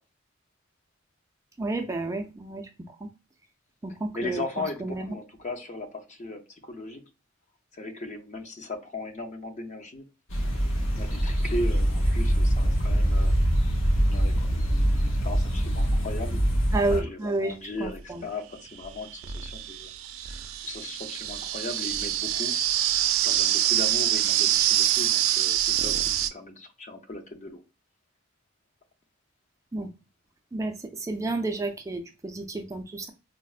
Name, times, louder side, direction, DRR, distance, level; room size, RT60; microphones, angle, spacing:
voice 1, 1.6-3.1 3.8-4.4 4.8-5.1 16.7-18.2 29.7-29.9 30.5-33.1, right 2 dB, 15° right, 4 dB, 0.3 m, -31 dB
voice 2, 4.1-7.0 7.7-10.1 11.0-13.3 14.0-16.4 16.9-19.9 20.3-20.4 20.6-22.8 23.2-26.0 26.3-27.6, left 2 dB, 35° left, 5 dB, 0.5 m, -37 dB
sound 1, 10.3-17.0, equal, 75° left, 0.8 m, -24 dB
sound 2, 17.8-17.9 18.8-26.3, right 12 dB, 90° right, 0.4 m, -25 dB
4.1 x 2.0 x 2.3 m, 0.30 s
head